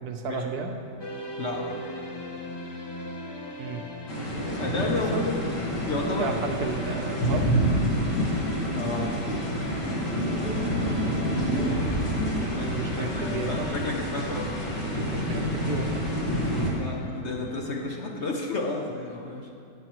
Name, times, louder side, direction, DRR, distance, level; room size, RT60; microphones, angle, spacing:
voice 1, 0.0-0.8 3.6-3.8 4.7-5.2 6.2-7.5 12.7-13.7 15.1-16.1, right 5 dB, 70° right, 4 dB, 1.2 m, -33 dB
sound 1, 1.0-17.9, left 2 dB, 35° left, 0.4 m, -41 dB
voice 2, 1.4-1.8 4.6-5.4 5.8-6.3 8.7-9.1 12.5-14.5 16.7-19.5, left 3 dB, 50° left, 0 dB, 0.9 m, -32 dB
sound 2, 4.1-16.7, equal, 80° left, 2.4 m, -28 dB
18.5 x 7.1 x 3.1 m, 2.5 s
omnidirectional pair, 1.8 m